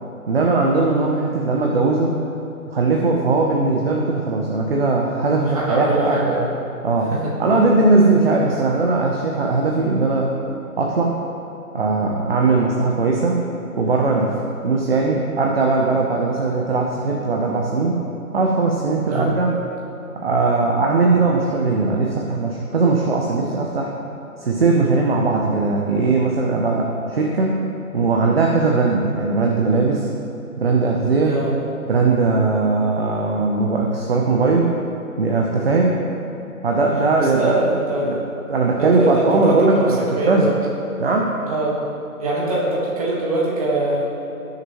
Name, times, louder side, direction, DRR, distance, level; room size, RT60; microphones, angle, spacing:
voice 1, 0.3-2.2 2.7-6.2 6.8-7.1 7.4-10.3 10.8-11.2 11.7-13.4 13.8-14.4 14.6-18.0 18.3-19.6 20.2-23.9 24.4-27.6 27.9-30.1 30.6-31.4 31.8-34.7 35.2-36.0 36.6-37.6 38.0-38.2 38.5-40.5 41.0-41.3, right 3 dB, 40° right, -1 dB, 0.9 m, -19 dB
voice 2, 5.5-6.4 7.1-7.7 12.4-12.7 19.1-19.3 31.2-31.6 37.2-38.2 38.8-40.5 41.5-41.8 42.2-44.0, right 2 dB, 25° right, -5 dB, 1.6 m, -22 dB
17.0 x 6.8 x 3.1 m, 2.9 s
hypercardioid pair, 160°, 44 cm